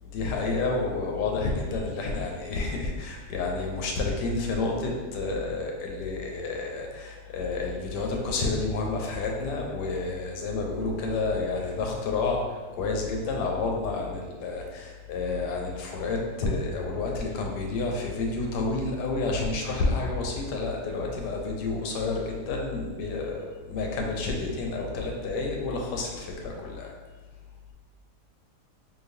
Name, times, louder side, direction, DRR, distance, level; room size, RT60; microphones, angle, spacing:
voice 1, 0.0-26.9, left 3 dB, 90° left, 0 dB, 1.2 m, -30 dB
3.9 x 2.8 x 2.6 m, 1.4 s
omnidirectional pair, 1.8 m